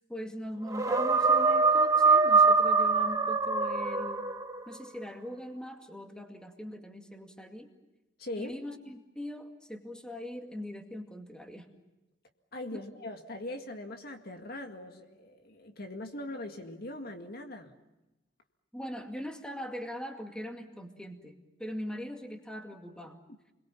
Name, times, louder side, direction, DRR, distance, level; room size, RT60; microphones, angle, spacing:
voice 1, 0.1-4.3 4.7-7.7 8.4-11.7 12.7-12.8 18.7-23.2, equal, 5° left, 3 dB, 2.2 m, -41 dB
sound 1, 0.7-4.8, right 4 dB, 20° right, 1.4 m, -24 dB
voice 2, 8.2-8.6 12.5-17.7, left 1 dB, 55° left, 4 dB, 2.0 m, -41 dB
30.0 x 22.0 x 7.1 m, 1.0 s
head